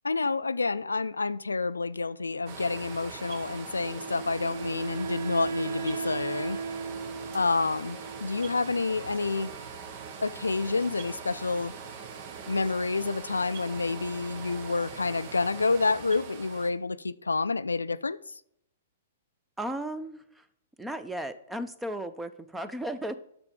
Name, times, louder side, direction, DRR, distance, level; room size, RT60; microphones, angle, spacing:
voice 1, 0.0-6.6 7.3-9.5 10.2-11.7 12.5-18.2, left 3 dB, 85° left, 0.3 m, -29 dB
sound 1, 2.5-16.7, right 6 dB, 45° right, 1.2 m, -42 dB
Wind instrument woodwind instrument, 3.8-8.8, right 5 dB, 90° right, 0.6 m, -37 dB
voice 2, 19.6-20.5 20.8-23.1, right 1 dB, 5° right, 0.7 m, -35 dB
9.6 x 6.8 x 5.2 m
figure-of-eight pair, 115°, 0 cm